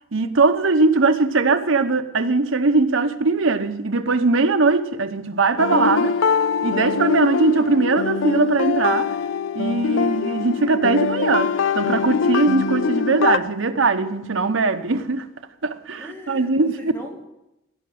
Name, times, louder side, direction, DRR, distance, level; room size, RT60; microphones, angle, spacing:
voice 1, 0.1-6.2 6.6-9.1 9.5-15.2 15.6-16.9, right 3 dB, 90° right, 1.0 m, -20 dB
sound 1, 5.6-13.4, left 6 dB, 80° left, 0.4 m, -23 dB
voice 2, 15.9-17.3, left 1 dB, 10° left, 2.2 m, -39 dB
16.5 x 5.9 x 9.3 m
head